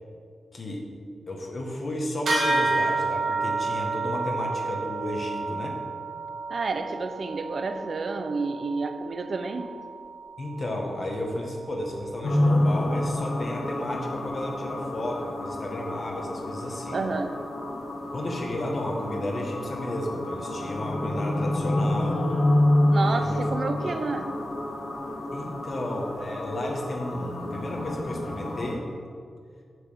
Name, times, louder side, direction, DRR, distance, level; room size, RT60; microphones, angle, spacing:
voice 1, 0.5-0.9 1.3-5.8 10.4-17.0 18.1-22.3 23.0-23.5 23.9-24.0 25.3-28.9, left 1 dB, 45° left, 0 dB, 1.6 m, -33 dB
sound 1, 2.3-12.1, right 3 dB, 85° right, 2.3 m, -31 dB
voice 2, 6.5-9.7 16.9-17.3 22.9-24.3, right 4 dB, 60° right, 7 dB, 0.8 m, -30 dB
sound 2, 12.2-28.7, left 1 dB, 80° left, 1.7 m, -28 dB
7.9 x 6.0 x 6.7 m, 2.2 s
wide cardioid pair, 115°, 0 cm